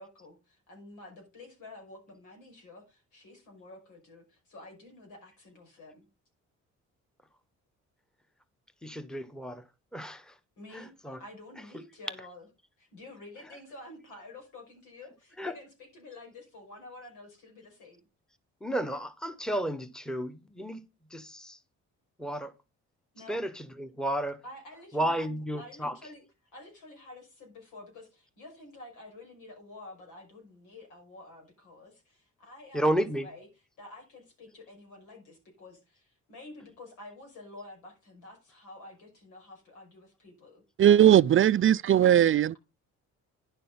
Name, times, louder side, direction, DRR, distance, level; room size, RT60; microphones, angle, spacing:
voice 1, 0.0-6.1 10.6-10.9 11.2-12.5 12.8-18.0 23.1-23.4 24.4-26.2 26.5-40.6 42.0-42.6, left 2 dB, 90° left, 5.6 m, -49 dB
voice 2, 8.8-9.6 9.9-10.3 10.7-11.2 15.4-15.5 18.6-20.8 21.1-21.6 22.2-22.5 23.3-24.4 24.9-25.9 32.7-33.3, right 1 dB, ahead, 1.2 m, -32 dB
voice 3, 40.8-42.6, right 10 dB, 45° right, 0.4 m, -19 dB
10.5 x 6.8 x 3.9 m
cardioid pair, 90°, 30 cm